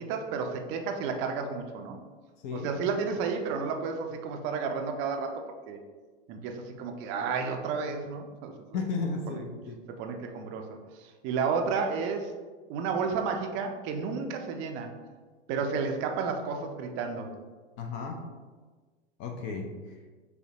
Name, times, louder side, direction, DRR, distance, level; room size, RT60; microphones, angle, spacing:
voice 1, 0.0-2.0 2.5-5.8 6.3-8.8 9.3-9.4 9.9-10.6 11.0-12.3 12.7-14.9 15.5-17.3, right 5 dB, 35° right, 4 dB, 0.5 m, -32 dB
voice 2, 8.7-9.8 17.8-18.2 19.2-19.9, left 4 dB, 35° left, 3 dB, 0.5 m, -34 dB
5.3 x 2.1 x 2.8 m, 1.4 s
figure-of-eight pair, 90°, 34 cm